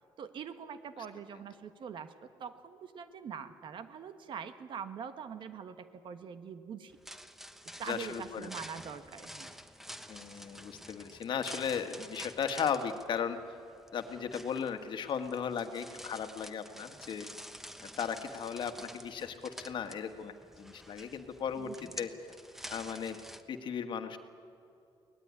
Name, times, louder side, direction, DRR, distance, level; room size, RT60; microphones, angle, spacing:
voice 1, 0.2-7.0 7.8-9.6 21.6-22.1, right 7 dB, 60° right, 10 dB, 1.4 m, -44 dB
sound 1, 6.9-23.4, equal, 5° right, 1.1 m, -49 dB
voice 2, 7.9-8.5 10.1-13.4 13.9-17.3 18.0-22.3 22.7-23.2 23.5-24.2, left 7 dB, 60° left, 7 dB, 1.6 m, -36 dB
23.5 x 18.5 x 9.8 m, 2.7 s
cardioid pair, 120°, 9 cm